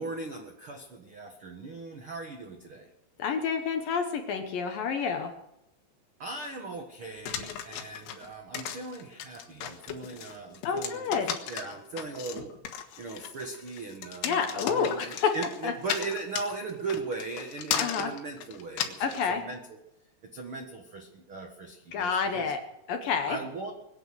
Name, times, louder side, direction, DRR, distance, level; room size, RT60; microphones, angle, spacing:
voice 1, 0.0-2.9 6.2-11.2 11.5-19.6 20.3-22.5 23.3-23.7, right 3 dB, 85° right, 3 dB, 1.1 m, -38 dB
voice 2, 3.2-5.3 10.6-11.4 14.2-15.3 15.6-15.7 17.8-18.1 19.0-19.4 21.9-22.6 22.9-23.4, left 6 dB, 70° left, 5 dB, 2.3 m, -29 dB
sound 1, 7.3-19.3, left 9 dB, 90° left, 3.9 m, -36 dB
23.5 x 9.3 x 6.3 m, 0.89 s
omnidirectional pair, 5.3 m